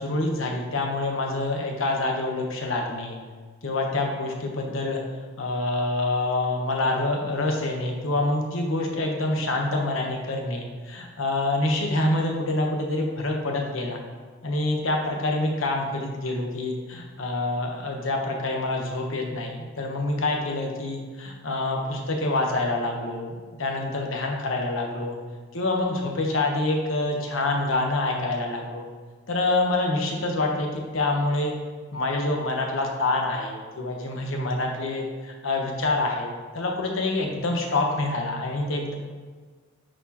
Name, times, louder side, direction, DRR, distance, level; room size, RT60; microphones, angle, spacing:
voice 1, 0.0-3.2 3.6-5.0 5.4-14.0 14.4-25.2 25.5-28.9 29.3-31.5 31.9-38.9, left 2 dB, 85° left, 1 dB, 1.0 m, -26 dB
8.9 x 4.3 x 2.9 m, 1.5 s
head